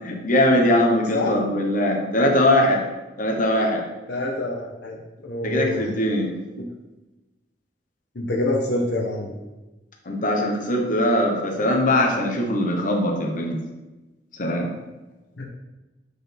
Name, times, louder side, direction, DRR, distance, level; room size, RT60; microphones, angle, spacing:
voice 1, 0.0-2.8 3.2-3.8 5.4-6.3 10.1-13.6 14.4-14.7, left 1 dB, 45° left, 1 dB, 1.1 m, -21 dB
voice 2, 4.1-5.8 6.6-6.7 8.1-9.3 15.4-15.5, left 2 dB, 60° left, -1 dB, 0.9 m, -26 dB
8.3 x 4.6 x 3.4 m, 1.1 s
head